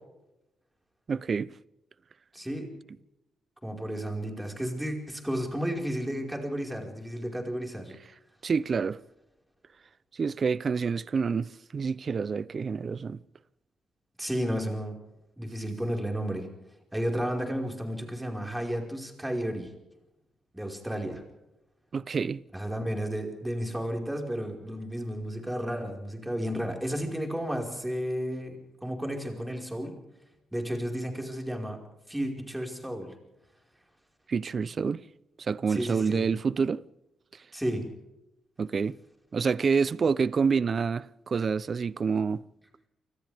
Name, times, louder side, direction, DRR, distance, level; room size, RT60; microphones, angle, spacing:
voice 1, 1.1-1.5 8.4-9.0 10.1-13.2 21.9-22.4 34.3-35.0 35.4-36.8 38.6-39.0 39.3-42.4, right 5 dB, 40° right, 0.6 m, -27 dB
voice 2, 2.3-2.7 3.6-7.9 14.2-15.0 15.4-16.5 16.9-19.7 20.5-21.2 22.5-29.9 30.5-31.8 32.1-33.1 35.7-36.3 37.5-37.8, equal, 5° right, 5.0 m, -32 dB
28.5 x 25.5 x 3.6 m
cardioid pair, 120°, 0 cm